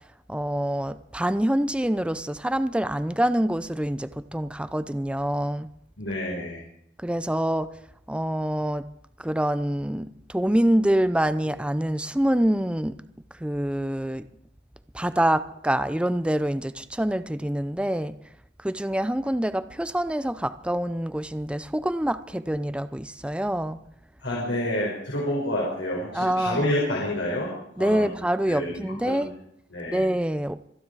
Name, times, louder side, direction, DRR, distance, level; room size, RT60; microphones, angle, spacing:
voice 1, 0.3-5.7 7.0-7.7 8.1-8.9 9.2-13.0 13.4-14.3 14.9-18.2 18.6-23.8 26.1-26.7 27.8-29.3 29.9-30.6, right 1 dB, 5° right, 12 dB, 0.5 m, -26 dB
voice 2, 6.0-6.6 24.2-28.1 28.5-29.3 29.7-30.0, left 1 dB, 80° left, -4 dB, 5.3 m, -29 dB
27.0 x 10.0 x 4.8 m, 0.73 s
head